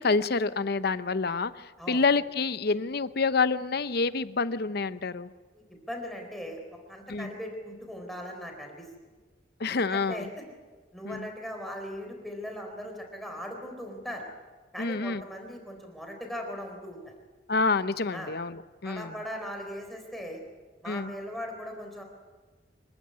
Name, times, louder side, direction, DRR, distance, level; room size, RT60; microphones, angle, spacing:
voice 1, 0.0-5.3 7.1-7.3 9.6-10.3 11.0-11.3 14.8-15.2 17.5-19.1 20.9-21.1, left 4 dB, 55° left, 13 dB, 0.8 m, -28 dB
voice 2, 5.7-6.6 6.9-8.9 9.7-10.3 10.9-14.3 14.7-17.1 18.1-18.4 18.8-20.4 20.8-22.0, equal, ahead, 2 dB, 4.2 m, -39 dB
25.5 x 15.0 x 9.7 m, 1.3 s
head